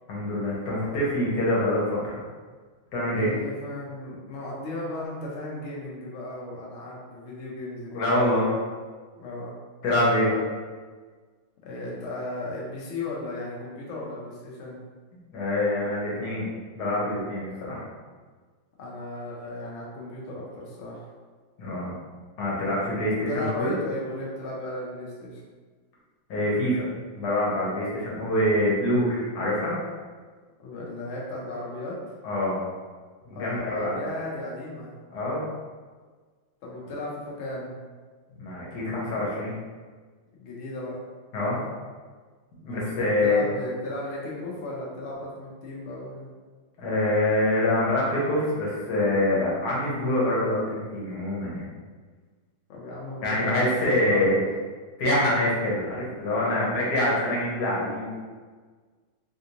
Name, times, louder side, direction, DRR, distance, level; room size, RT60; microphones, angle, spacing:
voice 1, 0.1-2.2 2.9-3.3 7.9-8.5 9.8-10.4 15.3-16.5 16.8-17.8 21.6-21.9 22.4-23.7 26.3-26.8 27.1-29.8 32.2-32.6 33.2-33.9 35.1-35.4 38.3-39.5 41.3-41.6 42.6-43.4 46.8-51.6 53.2-54.4 55.0-58.2, left 1 dB, 60° left, -5 dB, 1.3 m, -25 dB
voice 2, 3.1-8.1 9.2-9.5 11.6-14.8 18.8-21.1 23.3-25.4 30.6-32.0 33.3-34.9 36.6-37.8 40.4-41.0 42.6-46.3 52.7-54.3 56.4-56.9, left 1 dB, 85° left, -4 dB, 0.6 m, -36 dB
3.5 x 2.5 x 2.8 m, 1.5 s
omnidirectional pair, 2.2 m